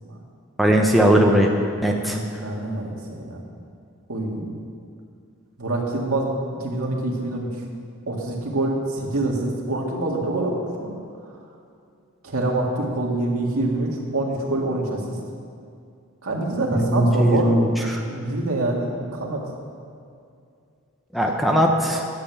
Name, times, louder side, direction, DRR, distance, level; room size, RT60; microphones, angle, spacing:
voice 1, 0.6-1.5 1.8-2.2 16.7-18.0 21.1-22.1, right 1 dB, ahead, 0 dB, 0.8 m, -19 dB
voice 2, 1.8-3.4 4.1-4.5 5.6-6.3 6.6-7.5 8.1-10.5 10.8-10.9 12.2-15.0 16.2-17.6 18.0-19.4, right 2 dB, 85° right, -1 dB, 2.0 m, -26 dB
10.5 x 7.7 x 7.1 m, 2.4 s
head